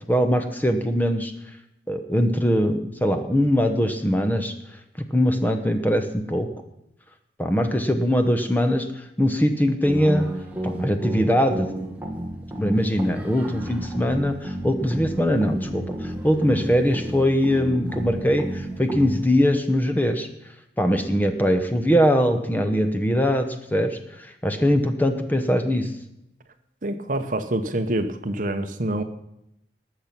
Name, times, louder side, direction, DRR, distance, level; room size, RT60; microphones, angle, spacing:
voice 1, 0.1-1.3 1.9-4.5 5.0-6.5 7.4-8.9 9.2-10.3 10.6-11.7 12.6-20.3 20.8-25.9, equal, 10° left, 7 dB, 1.0 m, -22 dB
sound 1, 9.8-19.4, right 1 dB, 10° right, 1.5 m, -32 dB
voice 2, 26.8-29.0, right 1 dB, 45° right, 9 dB, 0.9 m, -26 dB
19.5 x 6.8 x 5.9 m, 0.83 s
head